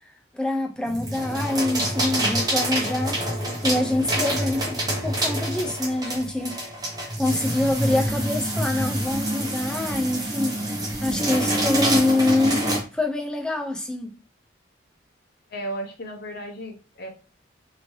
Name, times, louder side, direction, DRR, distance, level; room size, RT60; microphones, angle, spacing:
voice 1, 0.3-3.2 3.6-6.6 7.2-10.6 11.0-12.6 12.9-14.1, left 2 dB, 5° left, 0.4 m, -25 dB
sound 1, 0.9-12.8, right 1 dB, 20° right, 0.7 m, -26 dB
voice 2, 15.5-17.1, right 1 dB, 55° left, 0.8 m, -34 dB
2.9 x 2.6 x 3.0 m
head